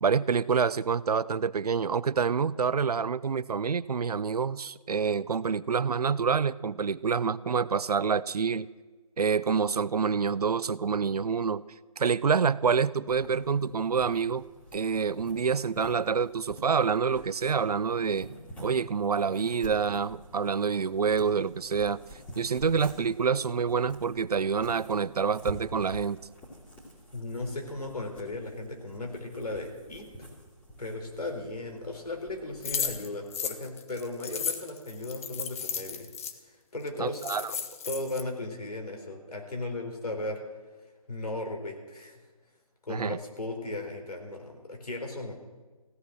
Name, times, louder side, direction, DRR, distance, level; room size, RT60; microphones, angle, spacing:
voice 1, 0.0-8.7 9.2-11.6 12.0-14.4 14.7-18.3 18.6-22.0 22.4-26.2 37.0-37.5 42.9-43.2, right 6 dB, 80° right, 19 dB, 0.5 m, -27 dB
sound 1, 13.1-33.0, equal, 10° left, 2.4 m, -48 dB
voice 2, 27.1-30.3 30.8-36.1 36.7-37.2 37.9-40.4 41.1-42.2 42.8-45.4, left 2 dB, 85° left, 2 dB, 4.0 m, -36 dB
sound 2, 32.6-36.3 36.9-37.0 37.1-38.2, left 7 dB, 25° left, 0.7 m, -34 dB
16.0 x 11.5 x 6.3 m, 1.3 s
figure-of-eight pair, 155°, 19 cm